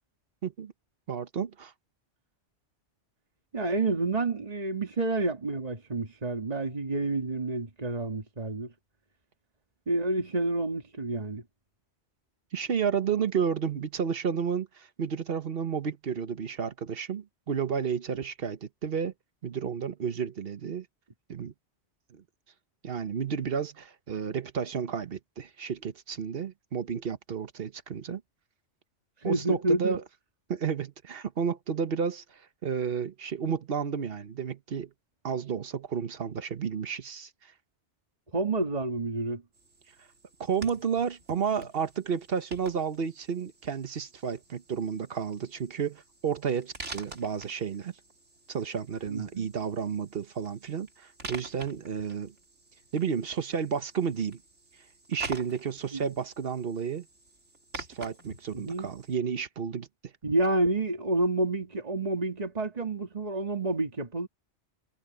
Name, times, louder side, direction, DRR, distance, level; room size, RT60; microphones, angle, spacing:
voice 1, 0.4-0.7 1.1-1.7 12.5-19.1 19.4-20.9 21.3-21.5 22.1-22.2 22.8-28.2 29.2-30.0 30.5-34.9 35.2-37.3 40.4-47.9 48.5-52.3 52.9-54.4 55.1-57.1 57.8-60.1, right 7 dB, 55° right, 1.2 m, -31 dB
voice 2, 3.5-8.7 9.9-11.4 29.2-30.0 38.3-39.4 49.1-49.5 55.9-56.0 58.5-58.9 60.2-64.3, right 2 dB, 35° right, 2.0 m, -29 dB
sound 1, 39.5-59.1, right 2 dB, 85° right, 3.6 m, -47 dB
omnidirectional pair, 1.2 m